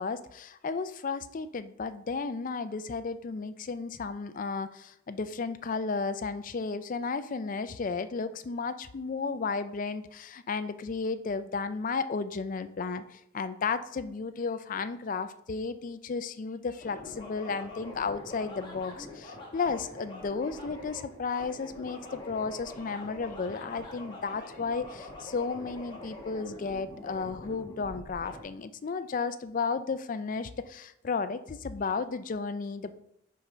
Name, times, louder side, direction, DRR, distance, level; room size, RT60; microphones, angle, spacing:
voice 1, 0.0-33.0, left 4 dB, 40° left, 11 dB, 0.4 m, -33 dB
sound 1, 16.8-28.4, left 2 dB, 25° left, 1.3 m, -44 dB
5.7 x 5.1 x 4.2 m, 0.75 s
head